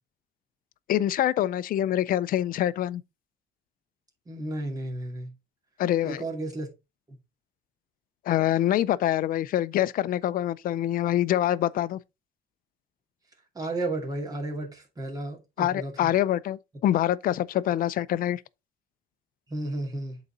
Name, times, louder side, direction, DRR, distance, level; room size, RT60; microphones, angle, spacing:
voice 1, 0.9-3.0 5.8-6.2 8.3-12.0 15.6-18.4, left 12 dB, 55° left, 0.5 m, -25 dB
voice 2, 4.3-5.3 6.0-6.7 13.5-16.1 19.5-20.2, right 2 dB, 20° right, 2.4 m, -33 dB
8.0 x 4.1 x 3.9 m
cardioid pair, 110°, 17 cm